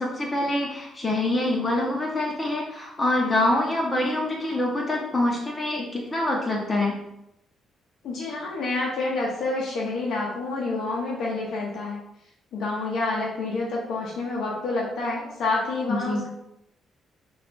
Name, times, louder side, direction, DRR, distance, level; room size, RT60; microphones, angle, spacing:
voice 1, 0.0-7.0 15.9-16.2, left 1 dB, 25° left, -2 dB, 0.6 m, -25 dB
voice 2, 8.0-12.0 12.5-16.3, left 3 dB, 70° left, -4 dB, 0.6 m, -28 dB
2.4 x 2.3 x 3.6 m, 0.82 s
cardioid pair, 90°, 0 cm